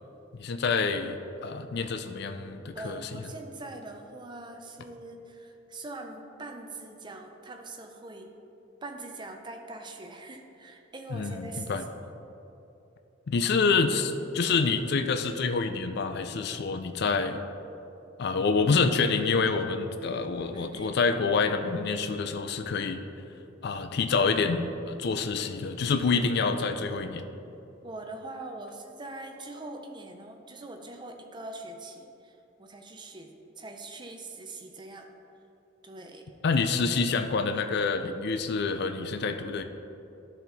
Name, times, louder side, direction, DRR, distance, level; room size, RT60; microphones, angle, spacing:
voice 1, 0.4-3.0 11.1-11.8 13.3-17.4 18.2-23.0 23.6-27.2 36.4-39.6, left 4 dB, 55° left, 7 dB, 0.4 m, -27 dB
voice 2, 2.7-8.3 8.8-12.1 20.5-21.0 27.8-35.1 35.8-36.3, right 2 dB, 25° right, 4 dB, 0.6 m, -43 dB
12.0 x 4.3 x 4.0 m, 2.8 s
head